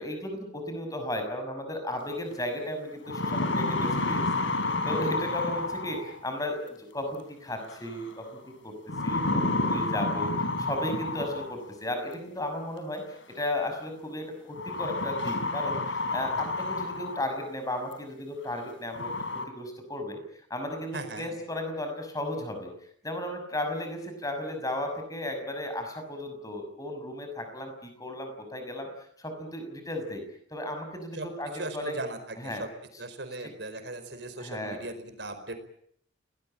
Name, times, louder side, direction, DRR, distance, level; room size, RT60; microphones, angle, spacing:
voice 1, 0.0-8.7 9.0-19.1 19.5-20.2 20.5-22.7 23.0-28.9 29.2-30.2 30.5-32.0 32.4-32.6 33.4-33.5 34.4-34.8, left 1 dB, 20° left, 6 dB, 6.1 m, -35 dB
sound 1, 2.3-2.4 2.9-6.3 7.7-8.1 8.9-11.7 12.9-13.0 14.6-17.4 17.9-18.0 18.6-18.7 18.9-19.4, left 2 dB, 75° left, 4.1 m, -30 dB
voice 2, 20.9-21.4 31.1-31.3 31.5-32.7 33.0-35.5, right 2 dB, 60° right, 8 dB, 4.9 m, -38 dB
29.0 x 19.0 x 8.9 m, 0.68 s
head